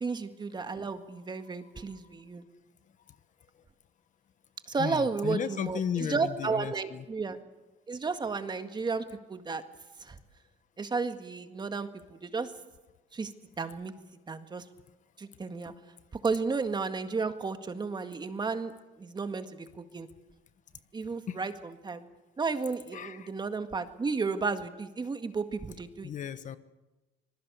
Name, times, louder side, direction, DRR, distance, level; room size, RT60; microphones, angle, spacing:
voice 1, 0.0-2.4 4.7-7.4 7.9-9.6 10.0-10.2 10.8-12.5 13.1-13.3 13.6-13.9 14.3-14.6 15.2-15.7 16.2-18.7 19.0-20.1 20.9-21.5 21.8-22.1 22.4-26.1, right 4 dB, 25° right, 8 dB, 1.8 m, -33 dB
voice 2, 4.8-7.0 21.3-21.4 22.9-23.3 26.0-26.6, left 8 dB, 50° left, 13 dB, 1.2 m, -35 dB
26.0 x 20.5 x 6.9 m, 1.1 s
cardioid pair, 110°, 17 cm